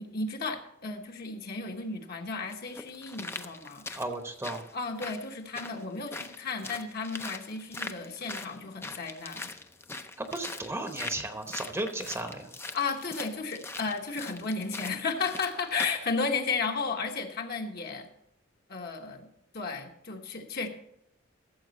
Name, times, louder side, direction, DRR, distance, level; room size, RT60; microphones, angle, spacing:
voice 1, 0.0-3.9 4.7-9.5 12.7-18.1 18.7-19.3 19.5-20.7, left 4 dB, 50° left, 3 dB, 1.2 m, -33 dB
sound 1, 1.7-1.8 2.5-16.1 16.5-16.6, left 3 dB, 10° left, 0.5 m, -42 dB
voice 2, 3.9-4.7 10.2-12.5, right 2 dB, 15° right, 5 dB, 0.9 m, -35 dB
14.0 x 7.3 x 4.1 m, 0.75 s
head